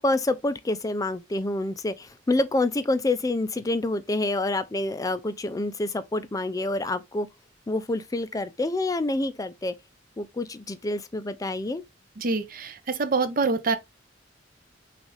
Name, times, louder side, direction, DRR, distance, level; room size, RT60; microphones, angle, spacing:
voice 1, 0.0-7.3 7.7-9.7 10.2-11.8, left 2 dB, 20° left, 0.4 m, -27 dB
voice 2, 12.2-13.8, right 4 dB, 45° right, 0.6 m, -25 dB
6.2 x 2.5 x 3.2 m
head